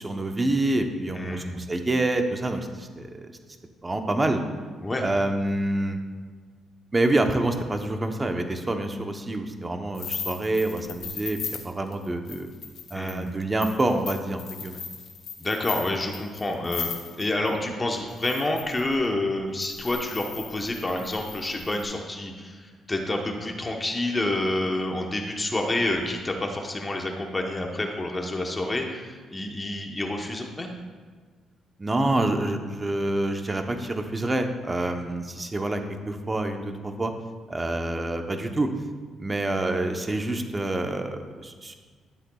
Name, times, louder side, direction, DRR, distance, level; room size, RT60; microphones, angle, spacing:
voice 1, 0.0-3.3 3.8-4.4 5.0-6.0 6.9-12.5 12.9-14.8 31.8-35.8 36.1-37.1 37.5-38.7 39.2-41.8, right 2 dB, 20° right, 5 dB, 0.8 m, -27 dB
voice 2, 1.1-1.6 4.8-5.0 12.9-13.3 15.4-30.7, left 1 dB, 20° left, 2 dB, 1.0 m, -28 dB
sound 1, 9.9-17.5 18.1-18.9 19.6-21.8, left 6 dB, 65° left, 1.6 m, -37 dB
12.5 x 7.9 x 2.3 m, 1.5 s
cardioid pair, 90°, 0 cm